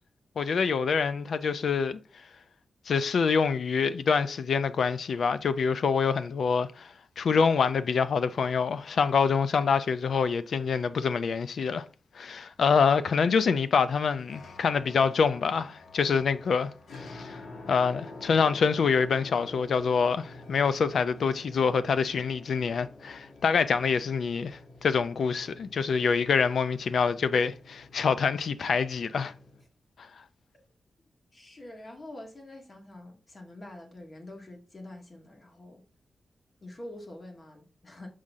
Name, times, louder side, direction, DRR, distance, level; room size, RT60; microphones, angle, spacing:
voice 1, 0.4-2.0 2.9-6.9 7.2-11.8 12.2-16.7 17.0-17.4 17.7-29.3, left 5 dB, 70° left, 0.5 m, -26 dB
sound 1, 14.1-29.6, left 2 dB, 85° left, 2.0 m, -48 dB
voice 2, 31.3-35.8 36.6-38.1, left 1 dB, 35° left, 1.9 m, -46 dB
6.4 x 5.7 x 3.6 m
wide cardioid pair, 135°, 0 cm